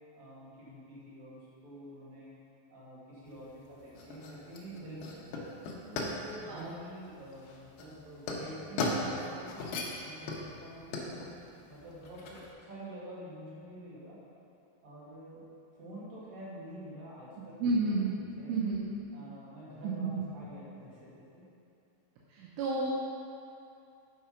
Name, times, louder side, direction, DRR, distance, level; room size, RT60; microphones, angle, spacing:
voice 1, 0.1-2.3 2.7-5.3 5.8-9.6 10.0-11.3 11.7-14.2 14.8-15.4 15.7-17.6 18.3-18.5 19.1-21.4, right 1 dB, 50° right, -8 dB, 2.5 m, -47 dB
sound 1, 3.2-12.5, left 2 dB, 80° left, 2.2 m, -38 dB
voice 2, 17.6-18.1 18.5-18.9 19.8-20.2 22.3-22.9, right 3 dB, 80° right, -6 dB, 3.4 m, -31 dB
8.1 x 6.0 x 5.7 m, 2.6 s
omnidirectional pair, 5.6 m